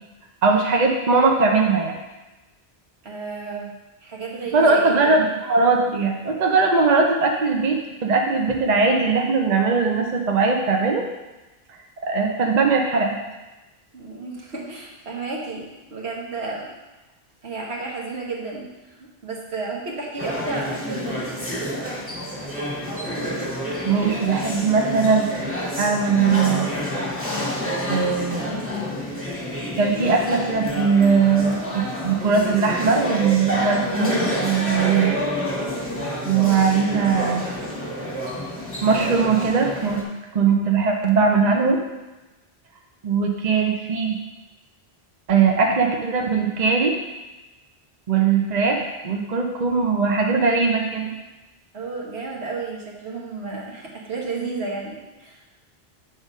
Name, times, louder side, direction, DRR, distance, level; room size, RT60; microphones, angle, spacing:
voice 1, 0.4-2.0 4.5-11.0 12.0-13.1 23.8-25.5 25.8-26.7 27.9-28.6 29.8-35.2 36.2-37.4 38.8-40.0 40.3-41.8 43.0-44.2 45.3-46.9 48.1-51.1, right 4 dB, 45° right, 1 dB, 0.8 m, -20 dB
voice 2, 3.0-3.7 4.0-5.2 13.9-16.7 17.4-21.3 51.7-55.4, right 3 dB, 80° right, -3 dB, 1.6 m, -32 dB
sound 1, 20.2-40.0, left 1 dB, 10° left, 1.2 m, -28 dB
7.7 x 3.7 x 5.5 m, 1.1 s
omnidirectional pair, 1.1 m